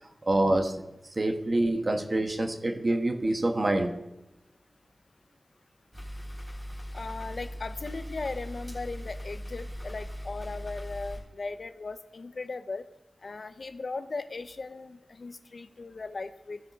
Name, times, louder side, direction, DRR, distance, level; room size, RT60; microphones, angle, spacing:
voice 1, 0.2-0.8 1.2-3.9, right 1 dB, 45° right, 5 dB, 1.0 m, -26 dB
sound 1, 5.9-11.2, equal, ahead, 3.2 m, -39 dB
voice 2, 6.9-12.9 13.2-16.6, left 3 dB, 65° left, 11 dB, 0.5 m, -38 dB
16.0 x 5.7 x 4.0 m, 0.94 s
wide cardioid pair, 80°, 0 cm